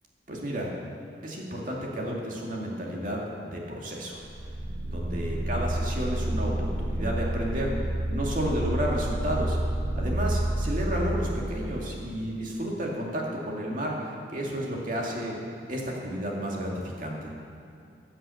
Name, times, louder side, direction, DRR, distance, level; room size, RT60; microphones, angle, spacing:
voice 1, 0.3-0.7 1.2-4.2 4.9-9.6 10.0-15.4 15.7-17.3, equal, 50° right, -2 dB, 2.2 m, -32 dB
sound 1, 4.2-11.9, right 1 dB, 65° right, 0.9 m, -29 dB
14.0 x 7.6 x 7.0 m, 2.5 s
head